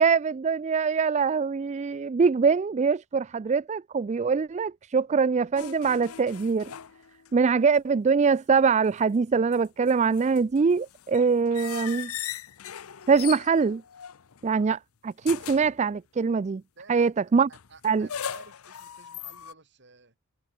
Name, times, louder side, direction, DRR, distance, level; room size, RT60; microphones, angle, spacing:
voice 1, 0.0-6.7 7.3-12.1 13.1-13.8 14.4-16.6 16.9-17.5 17.8-18.1, right 5 dB, 30° right, 0.3 m, -23 dB
sound 1, 5.6-7.5 7.7-7.8 9.3-14.6 15.2-15.8 17.5-19.5, left 9 dB, 75° left, 0.7 m, -39 dB
voice 2, 16.8-17.1 17.5-20.1, right 4 dB, 50° right, 4.9 m, -52 dB
head